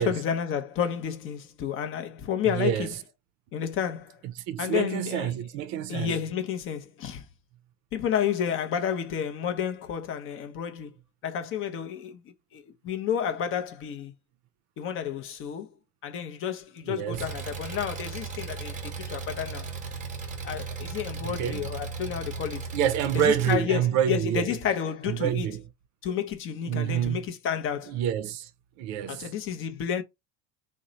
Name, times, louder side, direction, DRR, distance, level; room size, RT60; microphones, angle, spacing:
voice 1, 0.0-2.9 3.5-4.2 4.6-5.3 5.9-7.3 7.9-11.0 11.2-12.2 12.5-14.1 14.8-15.7 16.0-19.7 20.4-22.7 23.1-25.5 26.0-27.9 29.1-30.0, left 8 dB, 35° left, 0.6 m, -31 dB
voice 2, 2.5-2.9 4.2-6.2 16.8-17.3 21.2-21.6 22.7-24.5 25.1-25.6 26.7-27.2 27.9-28.5 28.8-29.3, right 10 dB, 50° right, 0.5 m, -27 dB
Engine, 17.1-23.5, right 4 dB, 20° right, 0.8 m, -36 dB
3.0 x 2.1 x 3.8 m
supercardioid pair, 130°, 35 cm